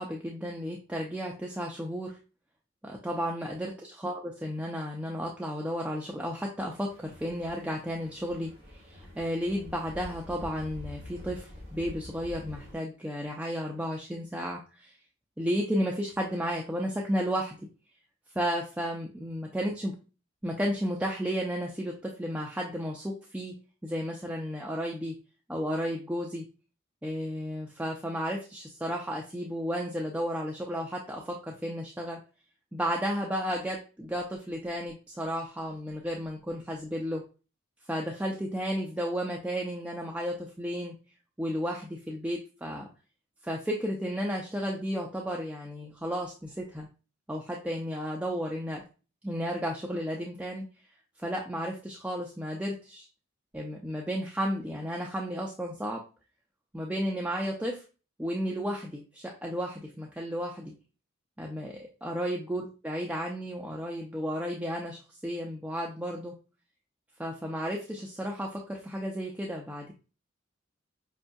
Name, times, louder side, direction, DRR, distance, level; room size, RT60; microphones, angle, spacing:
voice 1, 0.0-2.2 2.8-8.5 8.8-14.9 15.4-17.6 18.4-19.9 20.4-23.6 23.8-25.2 25.5-26.5 27.0-32.2 32.7-37.3 37.9-41.0 41.4-42.9 43.4-46.9 47.3-48.8 49.2-50.6 51.2-53.1 53.5-56.0 56.7-57.8 58.2-60.7 61.4-66.3 67.2-69.9, equal, 5° right, -1 dB, 0.4 m, -33 dB
sound 1, 6.9-12.7, left 1 dB, 30° right, 1.5 m, -46 dB
5.2 x 2.3 x 2.6 m, 0.33 s
head